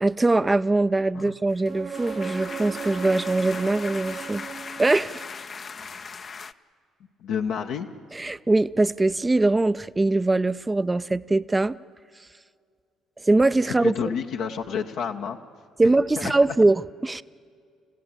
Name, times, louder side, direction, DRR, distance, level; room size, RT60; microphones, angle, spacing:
voice 1, 0.0-4.4 4.8-5.2 8.2-11.7 13.3-13.9 15.8-17.2, right 2 dB, 20° right, 16 dB, 0.6 m, -22 dB
sound 1, 1.5-6.5, left 5 dB, 40° left, 0.7 m, -39 dB
sound 2, 1.6-5.4 9.1-9.2, right 6 dB, 50° right, 0.9 m, -37 dB
voice 2, 7.2-7.9 13.6-15.4 15.8-16.3, left 7 dB, 70° left, 2 dB, 1.0 m, -29 dB
29.0 x 15.5 x 8.8 m, 2.2 s
hypercardioid pair, 55°, 0 cm